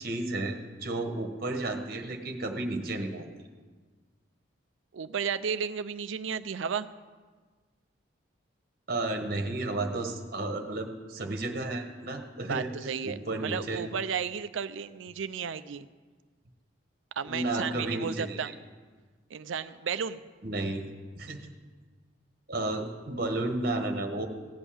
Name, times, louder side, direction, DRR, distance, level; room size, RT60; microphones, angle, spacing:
voice 1, 0.0-3.2 8.9-12.7 13.0-13.9 17.2-18.5 20.4-20.9 21.2-21.5 22.5-24.3, right 2 dB, 50° right, 4 dB, 1.3 m, -32 dB
voice 2, 4.9-6.9 12.4-15.9 17.2-18.5 19.3-20.2, right 6 dB, 75° right, 13 dB, 0.5 m, -33 dB
16.0 x 5.4 x 8.7 m, 1.4 s
head